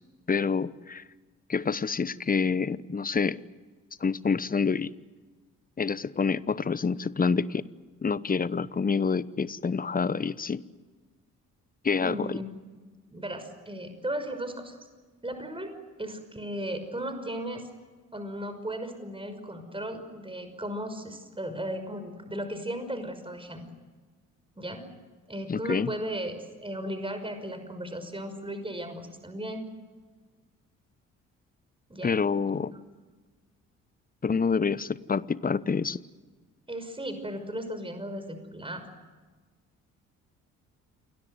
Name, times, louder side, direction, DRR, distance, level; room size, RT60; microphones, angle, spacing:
voice 1, 0.3-1.0 1.5-3.4 4.0-4.9 5.8-7.6 8.0-10.6 11.8-12.4 25.5-25.9 32.0-32.7 34.2-36.0, left 5 dB, 20° left, 19 dB, 1.0 m, -27 dB
voice 2, 12.0-12.8 13.1-14.8 15.2-15.7 16.0-17.7 18.1-23.6 24.6-24.8 25.3-29.7 31.9-32.2 36.7-38.8, right 1 dB, 15° right, 8 dB, 5.7 m, -36 dB
28.5 x 21.0 x 8.1 m, 1.3 s
figure-of-eight pair, 45°, 40 cm